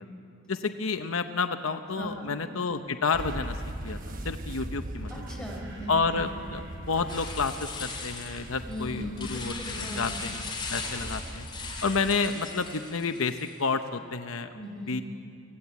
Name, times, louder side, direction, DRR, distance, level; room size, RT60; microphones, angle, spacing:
voice 1, 0.5-3.6 3.8-4.0 4.2-5.1 5.9-10.4 10.7-11.5 11.8-14.5 14.9-15.0, left 4 dB, 75° left, 8 dB, 0.9 m, -30 dB
voice 2, 1.9-2.3 5.1-6.2 8.7-10.1 14.5-15.0, left 1 dB, 5° left, -1 dB, 5.1 m, -38 dB
sound 1, 2.8-4.1 5.1-9.3 9.7-13.4, right 2 dB, 60° right, 6.9 m, -54 dB
sound 2, 3.1-12.2, right 1 dB, 40° right, 1.1 m, -40 dB
sound 3, 7.1-13.7, left 4 dB, 20° left, 3.0 m, -39 dB
25.5 x 17.0 x 8.4 m, 2.5 s
head